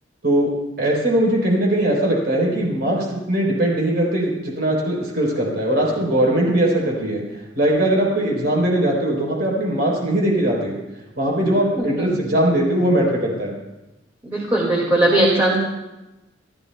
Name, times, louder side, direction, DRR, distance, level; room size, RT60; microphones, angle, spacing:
voice 1, 0.8-7.2 7.6-10.7 11.2-13.5, right 1 dB, 55° right, -2 dB, 3.8 m, -20 dB
voice 2, 11.4-12.2 14.2-15.6, right 1 dB, 15° right, -4 dB, 2.1 m, -20 dB
27.0 x 12.0 x 2.3 m, 1.0 s
head